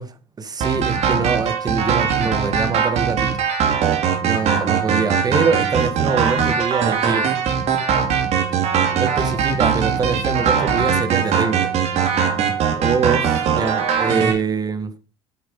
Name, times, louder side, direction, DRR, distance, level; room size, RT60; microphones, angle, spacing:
voice 1, 0.0-3.4 4.2-7.3 9.0-11.7 12.4-15.0, right 4 dB, 25° right, 1.7 m, -24 dB
sound 1, 0.6-14.3, right 7 dB, 50° right, 2.9 m, -20 dB
9.0 x 8.0 x 5.4 m
figure-of-eight pair, 60°, 14 cm